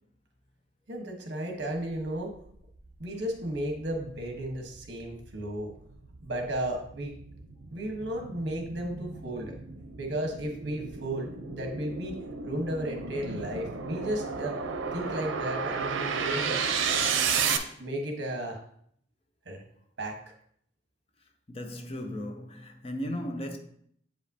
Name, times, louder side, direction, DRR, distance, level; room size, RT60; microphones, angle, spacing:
voice 1, 0.9-2.3 3.0-5.7 6.2-7.2 7.7-9.5 10.0-12.2 12.5-14.6 14.9-16.6 17.8-18.6 19.4-19.6 20.0-20.3, right 1 dB, 65° right, 1.2 m, -34 dB
sound 1, 2.9-3.0 3.5-17.6, right 6 dB, 90° right, 0.6 m, -33 dB
voice 2, 21.5-23.6, equal, 30° left, 0.5 m, -36 dB
7.5 x 5.1 x 2.7 m
head